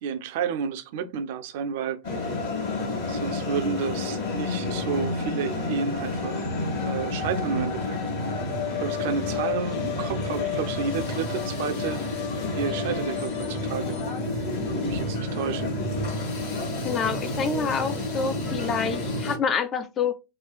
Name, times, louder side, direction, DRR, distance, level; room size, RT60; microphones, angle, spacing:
voice 1, 0.0-2.0 3.1-6.5 6.8-8.0 8.8-12.1 12.5-14.0 14.7-15.7, right 6 dB, 50° right, 0.4 m, -31 dB
sound 1, 2.0-19.4, left 3 dB, 50° left, 1.4 m, -29 dB
voice 2, 16.8-20.2, left 5 dB, 25° left, 0.4 m, -27 dB
3.7 x 2.3 x 2.4 m
figure-of-eight pair, 90°, 0 cm